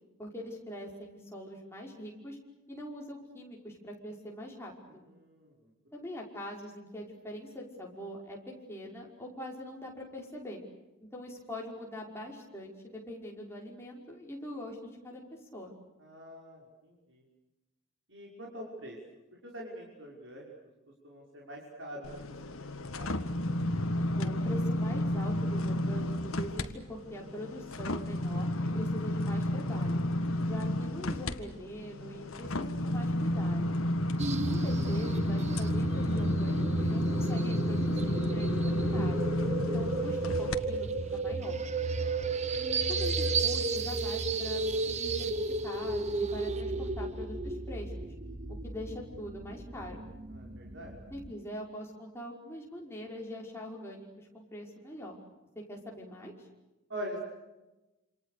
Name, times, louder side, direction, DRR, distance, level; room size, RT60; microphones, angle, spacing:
voice 1, 0.2-2.4 2.7-5.0 5.9-10.6 11.0-15.2 15.5-15.7 24.1-30.0 30.4-33.7 34.5-39.2 39.7-41.6 42.5-45.3 45.6-47.9 48.5-50.0 51.1-55.2 55.7-56.5, left 1 dB, 10° left, -2 dB, 5.5 m, -43 dB
voice 2, 5.0-5.7 16.0-17.2 18.1-19.0 19.4-20.5 21.0-23.1 41.9-42.3 50.3-50.9 56.9-57.2, equal, 55° right, -2 dB, 6.0 m, -45 dB
sound 1, 22.0-26.7 27.1-40.6 41.1-41.2, left 1 dB, 75° left, 1.8 m, -31 dB
sound 2, 34.2-51.3, right 3 dB, 30° right, 1.0 m, -33 dB
28.0 x 27.5 x 6.7 m, 1.0 s
head